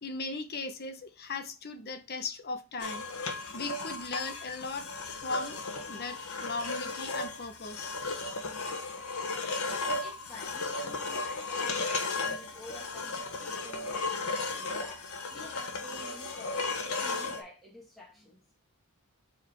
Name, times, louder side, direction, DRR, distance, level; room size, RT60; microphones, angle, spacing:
voice 1, 0.0-3.1 3.5-5.6 5.9-8.0, left 3 dB, 45° left, 0.9 m, -38 dB
sound 1, 2.8-17.4, left 3 dB, 70° left, 1.2 m, -35 dB
voice 2, 10.0-18.4, left 1 dB, ahead, 2.0 m, -50 dB
4.9 x 4.4 x 4.6 m
head